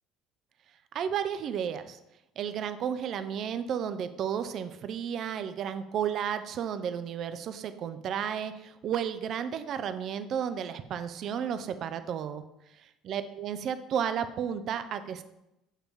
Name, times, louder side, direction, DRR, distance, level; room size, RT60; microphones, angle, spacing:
voice 1, 0.9-2.0 2.4-12.4 13.0-15.2, right 8 dB, 55° right, 10 dB, 0.5 m, -33 dB
7.3 x 2.9 x 5.2 m, 0.88 s
hypercardioid pair, 70°, 0 cm